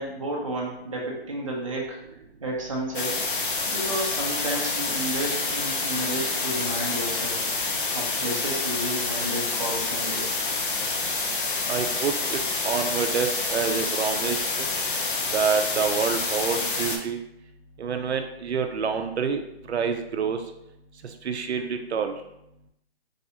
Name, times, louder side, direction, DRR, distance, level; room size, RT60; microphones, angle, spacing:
voice 1, 0.0-2.0 2.4-3.1 3.7-7.4 7.9-10.3, right 1 dB, 30° right, -2 dB, 0.4 m, -31 dB
sound 1, 2.9-17.0, left 3 dB, 55° left, 0.5 m, -28 dB
voice 2, 11.7-14.4 15.3-17.2 17.8-19.4 19.7-20.4 21.2-22.1, right 6 dB, 85° right, 6 dB, 0.5 m, -27 dB
3.2 x 2.6 x 2.7 m, 0.82 s
hypercardioid pair, 165°, 32 cm